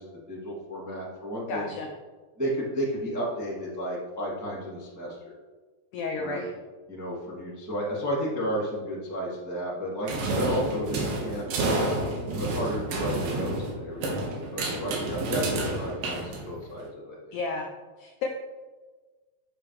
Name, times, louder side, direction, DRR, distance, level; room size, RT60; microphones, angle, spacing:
voice 1, 0.0-1.7 2.4-5.3 6.2-6.4 6.9-11.5 12.3-17.2, equal, 10° right, -7 dB, 0.9 m, -33 dB
voice 2, 1.5-1.9 5.9-6.5 17.3-17.7 18.0-18.3, left 3 dB, 80° left, 2 dB, 1.8 m, -32 dB
sound 1, 10.1-16.8, right 2 dB, 70° right, 2.8 m, -29 dB
9.1 x 6.8 x 3.2 m, 1.3 s
omnidirectional pair, 4.4 m